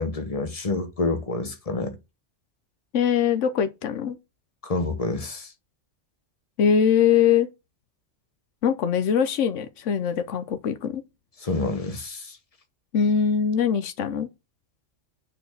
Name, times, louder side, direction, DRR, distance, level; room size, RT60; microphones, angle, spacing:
voice 1, 0.0-2.0 4.6-5.5 11.4-12.4, left 3 dB, 30° left, 1.1 m, -28 dB
voice 2, 2.9-4.2 6.6-7.5 8.6-11.0 12.9-14.3, left 7 dB, 90° left, 1.1 m, -22 dB
6.5 x 4.5 x 6.5 m
omnidirectional pair, 1.2 m